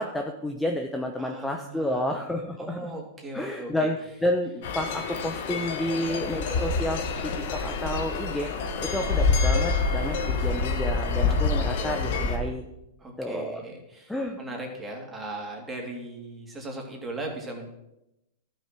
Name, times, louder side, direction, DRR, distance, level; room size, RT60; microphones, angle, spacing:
voice 1, 0.0-3.0 3.3-12.7 13.2-13.6 14.1-14.4, left 1 dB, 5° left, 3 dB, 1.0 m, -30 dB
voice 2, 1.2-2.3 2.6-3.9 5.9-6.1 11.7-12.5 13.0-17.7, right 2 dB, 15° right, 0 dB, 3.1 m, -38 dB
sound 1, 4.6-12.4, left 4 dB, 60° left, 1.7 m, -27 dB
13.0 x 6.5 x 6.1 m, 0.89 s
hypercardioid pair, 120°, 0 cm